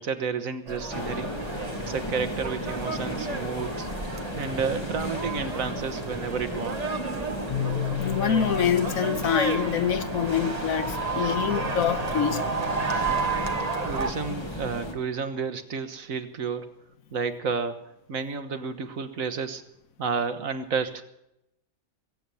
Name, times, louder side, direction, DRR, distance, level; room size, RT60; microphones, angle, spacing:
voice 1, 0.0-1.3 1.8-3.9 4.4-7.0 12.9-13.2 13.8-16.7 17.1-17.8 18.1-19.6 20.0-21.0, right 5 dB, 70° right, 1.6 m, -31 dB
sound 1, 0.7-14.1, right 4 dB, 30° right, 1.2 m, -32 dB
sound 2, 0.9-14.9, left 1 dB, 20° left, 2.3 m, -35 dB
Keyboard (musical), 7.5-11.2, left 11 dB, 60° left, 1.1 m, -34 dB
voice 2, 8.0-12.7, left 8 dB, 75° left, 1.4 m, -26 dB
21.5 x 9.1 x 7.0 m
omnidirectional pair, 1.5 m